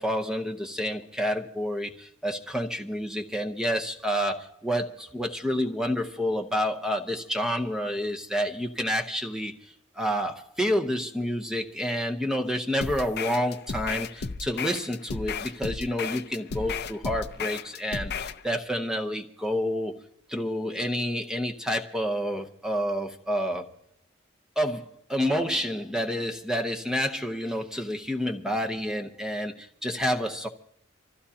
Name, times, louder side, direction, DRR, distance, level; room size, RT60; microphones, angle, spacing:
voice 1, 0.0-20.0 20.3-23.7 24.6-30.5, equal, 5° right, 4 dB, 0.8 m, -29 dB
sound 1, 12.8-18.4, left 5 dB, 50° left, 0.6 m, -34 dB
26.0 x 15.0 x 2.8 m, 0.68 s
head